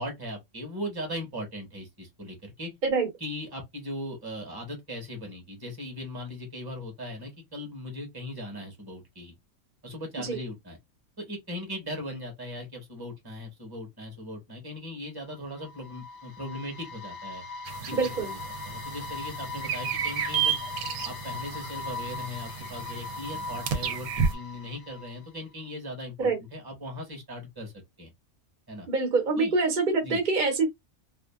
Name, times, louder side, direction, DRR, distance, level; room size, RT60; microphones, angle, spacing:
voice 1, 0.0-2.7 3.2-9.3 9.8-10.8 11.2-17.4 17.8-20.6 21.0-27.7 28.0-28.1 28.7-28.9 29.4-29.5 30.0-30.2, left 1 dB, 20° right, 1.0 m, -39 dB
sound 1, 15.3-25.4, left 4 dB, 70° left, 1.0 m, -40 dB
sound 2, 17.6-24.3, right 7 dB, 75° right, 1.0 m, -32 dB
voice 2, 17.9-18.3 26.2-26.4 28.9-30.7, right 4 dB, 40° right, 0.8 m, -25 dB
2.8 x 2.4 x 2.2 m
omnidirectional pair, 1.5 m